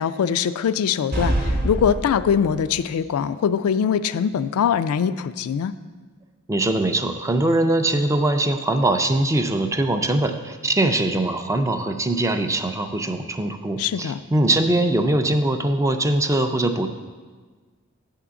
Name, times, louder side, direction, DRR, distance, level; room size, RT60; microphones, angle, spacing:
voice 1, 0.0-5.7 13.8-14.2, left 7 dB, 70° left, 13 dB, 0.3 m, -22 dB
sound 1, 1.1-2.8, right 1 dB, 40° right, 0.9 m, -25 dB
voice 2, 6.5-16.9, right 2 dB, 15° right, 7 dB, 0.4 m, -22 dB
8.7 x 3.7 x 6.9 m, 1.4 s
head